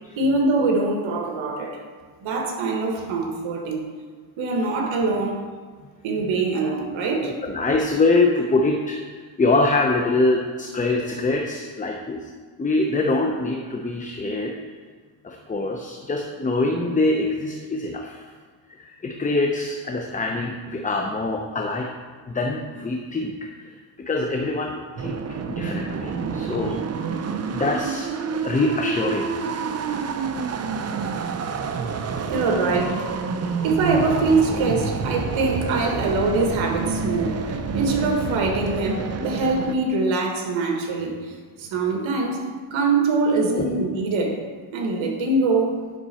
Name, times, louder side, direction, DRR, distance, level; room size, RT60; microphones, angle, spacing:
voice 1, 0.2-1.8 2.2-3.9 4.4-5.5 6.0-7.3 32.3-33.1 33.6-37.4 37.7-41.3 41.6-44.4 44.7-45.8, right 3 dB, 70° right, 2 dB, 1.6 m, -23 dB
voice 2, 7.2-12.3 12.6-14.5 15.2-18.3 18.8-21.9 22.3-23.7 24.1-25.2 25.5-26.8 27.5-29.3 43.6-43.7, left 2 dB, 15° left, 1 dB, 0.7 m, -24 dB
sound 1, 25.0-39.8, right 5 dB, 35° right, 0.6 m, -28 dB
sound 2, 33.6-39.2, left 2 dB, 40° left, 1.8 m, -37 dB
10.5 x 6.0 x 4.3 m, 1.5 s
cardioid pair, 115°, 48 cm